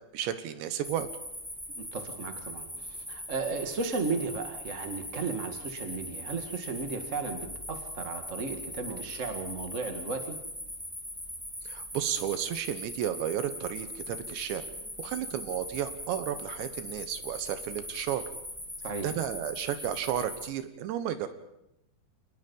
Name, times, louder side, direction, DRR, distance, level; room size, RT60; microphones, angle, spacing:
voice 1, 0.1-1.1 8.9-9.0 11.7-14.6 15.0-18.2 19.0-21.3, right 10 dB, 85° right, 10 dB, 3.6 m, -33 dB
sound 1, 0.8-20.5, left 1 dB, ahead, 1.8 m, -41 dB
voice 2, 1.7-10.4 18.8-19.1, right 4 dB, 50° right, 6 dB, 0.8 m, -35 dB
28.0 x 19.5 x 5.5 m, 0.85 s
omnidirectional pair, 5.0 m